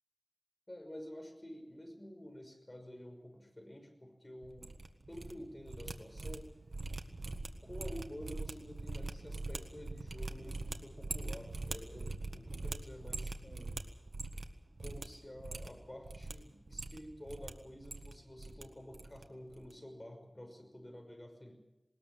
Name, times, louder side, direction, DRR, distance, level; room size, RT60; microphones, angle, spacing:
voice 1, 0.7-4.7 5.1-6.5 7.6-13.7 14.8-21.5, left 1 dB, 25° left, 4 dB, 5.9 m, -50 dB
sound 1, 4.4-5.3 5.6-14.5 14.8-15.1 15.4-16.3 16.7-17.5 17.8-18.6 18.9-19.2 19.5-19.7, right 3 dB, 80° right, 1.6 m, -42 dB
20.0 x 20.0 x 7.6 m, 0.96 s
wide cardioid pair, 65°, 0 cm